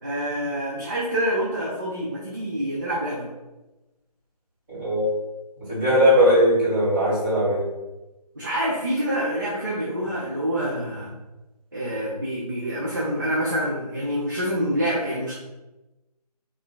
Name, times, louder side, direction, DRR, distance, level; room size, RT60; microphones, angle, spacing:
voice 1, 0.0-3.3 8.4-11.1 11.7-15.3, equal, 30° right, -6 dB, 0.4 m, -26 dB
voice 2, 4.7-5.1 5.7-7.6, equal, 15° right, -10 dB, 1.4 m, -19 dB
5.1 x 2.2 x 2.2 m, 1.0 s
figure-of-eight pair, 155°, 21 cm